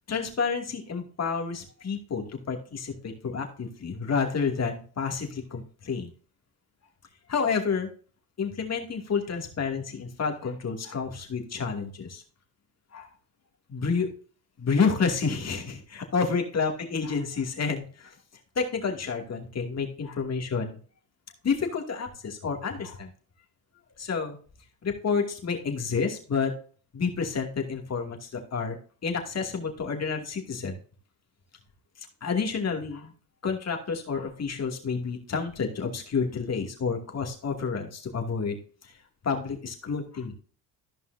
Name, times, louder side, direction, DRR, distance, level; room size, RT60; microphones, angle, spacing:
voice 1, 0.1-6.1 7.3-7.9 8.4-12.2 12.9-13.1 13.7-14.1 14.6-18.1 18.6-20.7 21.4-23.1 24.0-24.4 24.8-26.5 26.9-28.8 29.0-30.8 32.2-33.1 33.4-38.6 39.2-40.3, left 5 dB, 40° left, 3 dB, 2.6 m, -29 dB
14.5 x 5.5 x 2.7 m, 0.41 s
cardioid pair, 85°, 38 cm